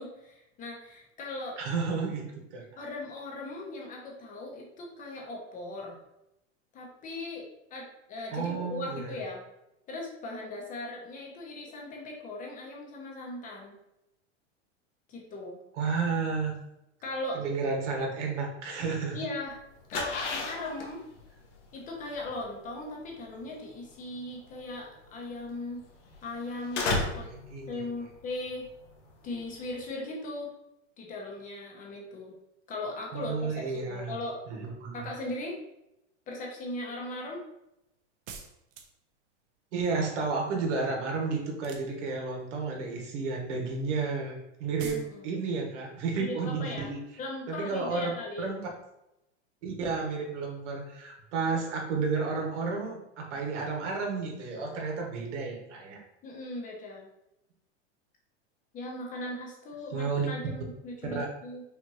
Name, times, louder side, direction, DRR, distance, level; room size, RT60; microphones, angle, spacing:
voice 1, 0.0-1.6 2.8-6.0 6.7-9.4 9.9-13.7 15.1-15.6 17.0-17.4 19.1-19.6 19.9-21.0 21.7-25.8 26.2-27.3 27.7-28.7 29.2-30.5 31.0-32.4 32.7-34.4 34.9-35.6 36.3-37.4 44.8-45.3 46.1-46.9 47.2-48.5 56.2-57.1 58.7-61.6, left 2 dB, 20° left, -1 dB, 0.8 m, -38 dB
voice 2, 1.6-2.6 8.3-9.1 15.8-16.5 17.3-19.2 27.2-27.8 33.1-34.1 34.5-35.1 39.7-47.0 47.5-48.1 48.4-48.6 49.6-56.0 59.9-60.3 61.1-61.3, right 4 dB, 85° right, 1 dB, 1.4 m, -32 dB
sound 1, 19.5-29.9, left 3 dB, 85° left, 1.2 m, -36 dB
sound 2, 38.3-39.2 41.5-42.4 44.8-45.1, right 6 dB, 45° right, 0.6 m, -45 dB
5.5 x 2.5 x 3.0 m, 0.85 s
supercardioid pair, 150°, 35 cm